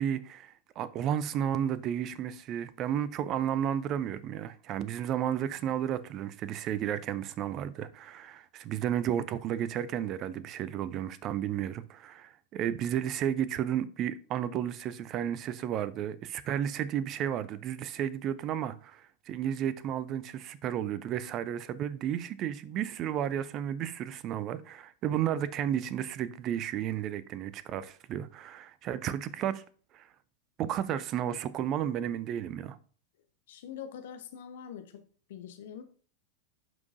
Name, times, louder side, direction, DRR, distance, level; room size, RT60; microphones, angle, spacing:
voice 1, 0.0-29.6 29.9-30.1 30.6-32.8, right 10 dB, 35° right, 0.6 m, -33 dB
voice 2, 33.5-35.0 35.3-35.8, left 8 dB, 55° left, 1.1 m, -44 dB
10.5 x 6.0 x 2.7 m
figure-of-eight pair, 90°, 0 cm